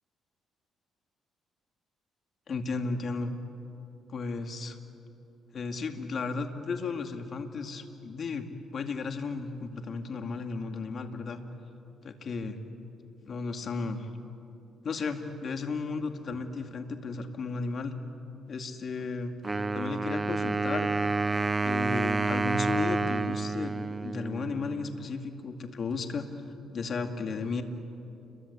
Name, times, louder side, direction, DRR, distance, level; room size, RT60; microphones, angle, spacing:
voice 1, 2.5-3.3 4.1-4.8 5.5-8.5 8.7-11.4 12.0-12.6 13.3-14.1 14.8-17.9 18.5-19.3 19.7-20.9 21.6-26.3 26.7-27.6, left 4 dB, 50° left, 5 dB, 2.4 m, -34 dB
Wind instrument woodwind instrument, 19.4-25.1, right 3 dB, 25° right, 0.5 m, -29 dB
30.0 x 23.0 x 8.4 m, 2.8 s
cardioid pair, 90°, 0 cm